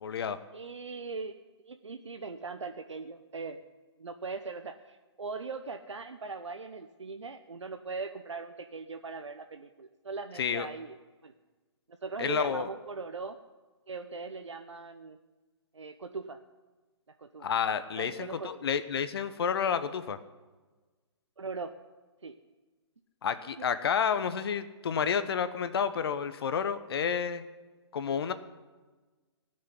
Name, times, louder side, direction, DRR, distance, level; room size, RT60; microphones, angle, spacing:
voice 1, 0.0-0.4 10.4-10.7 12.2-12.7 17.4-20.2 23.2-27.4 27.9-28.3, left 7 dB, 60° left, 11 dB, 1.1 m, -30 dB
voice 2, 0.5-3.6 4.0-11.0 11.2-11.3 11.9-13.4 13.9-15.2 15.7-16.4 17.2-17.5 17.9-18.6 21.4-21.8 22.2-22.4 23.6-23.7, right 4 dB, 85° right, 7 dB, 1.0 m, -40 dB
19.0 x 6.6 x 9.9 m, 1.3 s
figure-of-eight pair, 135°, 15 cm